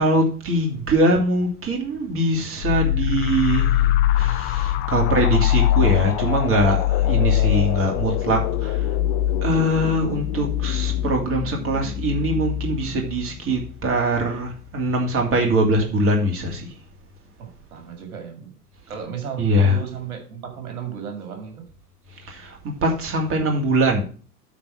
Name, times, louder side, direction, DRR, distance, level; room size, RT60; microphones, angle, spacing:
voice 1, 0.0-8.8 9.4-16.7 19.4-19.8 22.3-24.0, right 1 dB, 30° right, 2.4 m, -22 dB
sound 1, 2.6-14.0, left 13 dB, 25° left, 0.4 m, -23 dB
voice 2, 17.4-18.6 18.9-21.7, right 8 dB, 65° right, 2.4 m, -34 dB
9.1 x 4.1 x 7.1 m
figure-of-eight pair, 85°, 45 cm